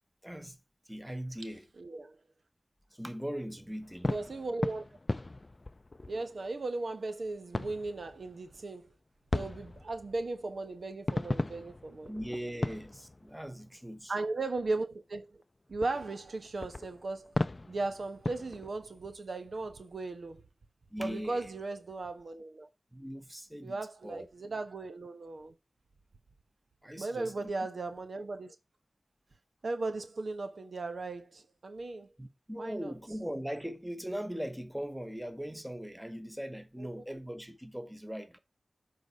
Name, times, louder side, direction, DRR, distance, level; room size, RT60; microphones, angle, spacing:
voice 1, 0.2-0.6 0.9-1.7 2.9-4.2 12.1-14.1 20.9-21.5 22.9-24.3 26.8-27.5 32.2-38.4, equal, 10° right, 1.2 m, -40 dB
voice 2, 1.8-2.2 4.0-4.8 6.1-8.9 9.3-12.1 14.1-15.4 15.7-17.3 17.6-20.4 21.0-22.7 23.6-25.5 27.0-28.6 29.6-32.1 32.6-32.9 36.8-36.9, right 3 dB, 70° right, 1.0 m, -37 dB
sound 1, 3.8-6.7 7.0-7.1 7.5-8.7 9.3-13.8 14.2-14.3 14.8-14.9 15.4-15.5 15.8-18.7, left 2 dB, 40° left, 0.5 m, -37 dB
7.9 x 4.1 x 5.3 m
cardioid pair, 45°, 0 cm